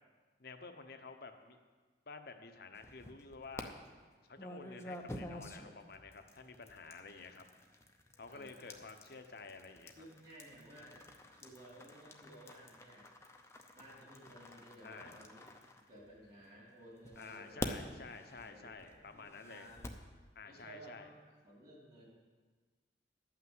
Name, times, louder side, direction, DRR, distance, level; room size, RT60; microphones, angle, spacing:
voice 1, 0.4-1.6 2.1-3.7 4.3-7.5 8.2-9.9 14.8-15.2 17.2-19.7 20.3-21.1, left 4 dB, 55° left, 6 dB, 0.9 m, -51 dB
sound 1, 2.7-3.6 4.4-16.4 17.0-20.1, left 1 dB, 15° left, 0.7 m, -49 dB
voice 2, 8.3-8.8 10.0-11.0 11.3-13.1 13.7-15.5 15.7-17.8 18.3-19.9 20.4-22.2, right 1 dB, 40° right, -5 dB, 2.8 m, -56 dB
12.0 x 5.9 x 7.9 m, 1.4 s
head